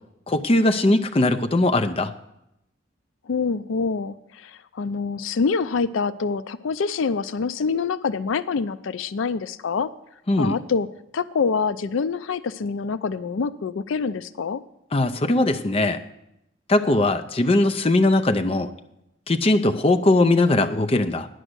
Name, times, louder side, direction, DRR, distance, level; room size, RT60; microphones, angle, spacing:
voice 1, 0.3-2.1 10.3-10.6 14.9-16.0 16.7-18.7 19.3-21.3, left 2 dB, 30° left, 7 dB, 0.5 m, -20 dB
voice 2, 3.3-9.9 10.4-10.9 11.1-14.6, left 5 dB, 80° left, 14 dB, 0.4 m, -26 dB
10.0 x 6.3 x 7.9 m, 0.83 s
head